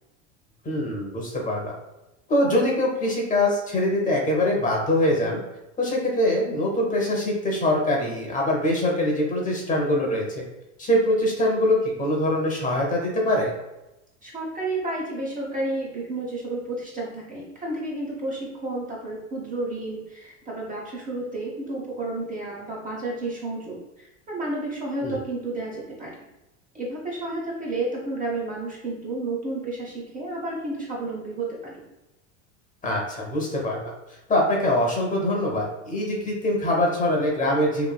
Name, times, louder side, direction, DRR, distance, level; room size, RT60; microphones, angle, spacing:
voice 1, 0.6-1.7 2.3-5.4 5.8-10.4 10.8-13.5 25.0-25.2 32.8-33.9 34.3-37.9, left 1 dB, 20° left, -1 dB, 0.7 m, -23 dB
voice 2, 14.2-26.3 26.7-31.8, right 2 dB, 20° right, -3 dB, 0.6 m, -31 dB
3.0 x 2.5 x 2.2 m, 0.95 s
supercardioid pair, 105°, 37 cm